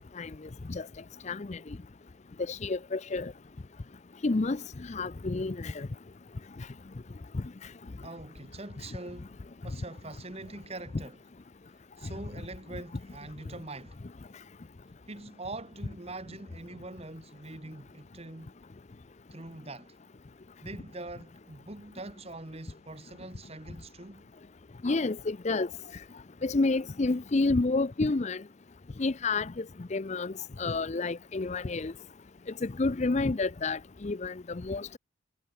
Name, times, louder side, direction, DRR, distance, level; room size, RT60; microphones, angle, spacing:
voice 1, 1.2-1.6 2.5-3.3 4.2-5.9 7.3-7.4 24.8-25.7 26.4-28.4 29.0-30.3 30.6-31.9 32.6-35.0, left 3 dB, 35° left, 0.5 m, -29 dB
voice 2, 8.0-9.4 9.6-11.2 12.0-14.0 15.1-18.5 19.3-20.0 20.6-24.3, right 2 dB, 30° right, 1.4 m, -43 dB
head